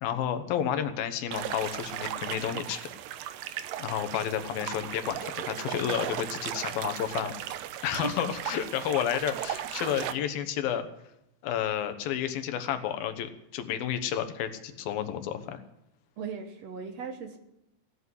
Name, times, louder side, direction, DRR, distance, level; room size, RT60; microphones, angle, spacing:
voice 1, 0.0-2.9 3.8-7.3 7.8-10.9 11.4-15.6, left 9 dB, 85° left, 9 dB, 2.9 m, -31 dB
sound 1, 1.3-10.1, right 12 dB, 80° right, 2.3 m, -36 dB
voice 2, 16.2-17.4, right 6 dB, 60° right, 6 dB, 1.9 m, -37 dB
17.0 x 8.4 x 9.6 m, 0.85 s
omnidirectional pair, 4.1 m